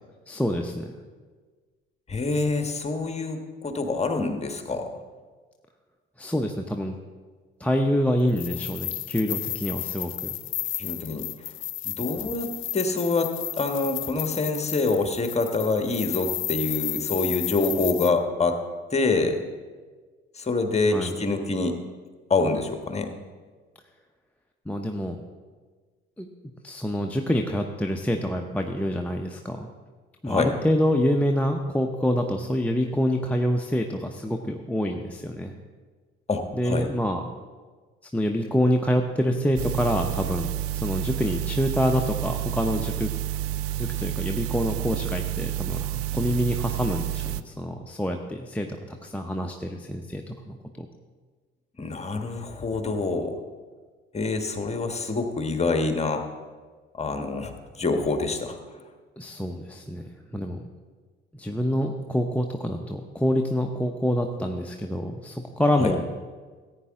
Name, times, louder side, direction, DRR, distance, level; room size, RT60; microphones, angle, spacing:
voice 1, 0.3-0.9 6.2-6.9 7.6-10.4 20.9-21.2 24.7-25.2 26.2-26.3 26.6-29.7 30.2-35.5 36.5-37.2 38.0-40.5 40.7-43.1 43.8-50.9 59.2-60.0 60.3-60.7 61.3-66.0, equal, 5° left, 2 dB, 0.8 m, -26 dB
voice 2, 2.1-4.9 10.8-11.3 11.8-18.6 18.9-19.4 20.3-21.8 22.3-23.1 30.2-30.5 36.3-36.9 51.8-53.4 54.1-56.2 56.9-58.6 65.8-65.9, left 3 dB, 20° left, 6 dB, 1.4 m, -26 dB
sound 1, 8.3-18.1, left 14 dB, 45° left, 0.5 m, -33 dB
sound 2, 39.6-47.4, right 13 dB, 55° right, 0.5 m, -30 dB
15.0 x 8.8 x 3.7 m, 1.4 s
hypercardioid pair, 55°, 29 cm